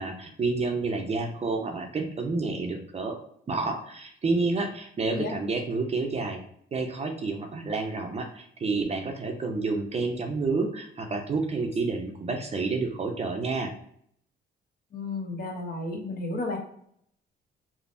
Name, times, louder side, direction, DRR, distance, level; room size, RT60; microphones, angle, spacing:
voice 1, 0.0-3.2 3.5-6.4 6.7-13.7, right 3 dB, 30° right, 4 dB, 0.5 m, -29 dB
voice 2, 14.9-16.6, left 2 dB, 50° left, 2 dB, 0.8 m, -32 dB
3.3 x 2.0 x 2.5 m, 0.66 s
cardioid pair, 90°, 20 cm